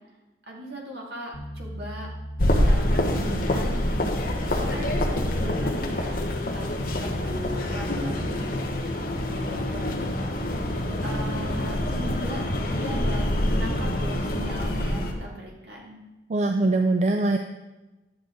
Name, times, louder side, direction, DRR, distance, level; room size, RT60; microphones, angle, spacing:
voice 1, 0.5-2.1 2.6-7.3 7.7-10.4 11.0-16.0, equal, 65° right, -2 dB, 2.4 m, -39 dB
sound 1, 1.3-6.7, equal, 75° left, 1.6 m, -37 dB
sound 2, 2.4-15.1, left 1 dB, 50° left, 1.1 m, -26 dB
voice 2, 16.3-17.4, right 2 dB, 40° right, 6 dB, 0.4 m, -22 dB
11.5 x 7.9 x 3.9 m, 1.1 s
head